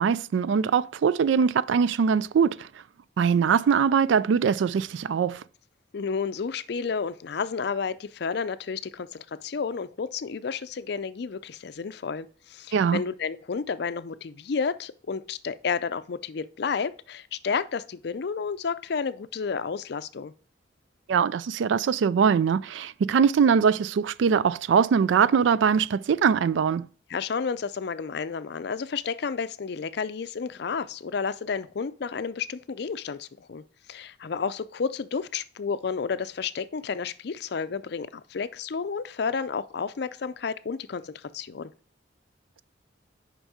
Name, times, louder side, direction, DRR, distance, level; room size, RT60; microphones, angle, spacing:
voice 1, 0.0-2.7 3.2-5.4 12.7-13.0 21.1-26.9, right 6 dB, 75° right, 0.3 m, -22 dB
voice 2, 5.9-20.3 27.1-33.6 33.9-41.7, left 5 dB, 60° left, 0.4 m, -31 dB
6.4 x 5.3 x 4.8 m
head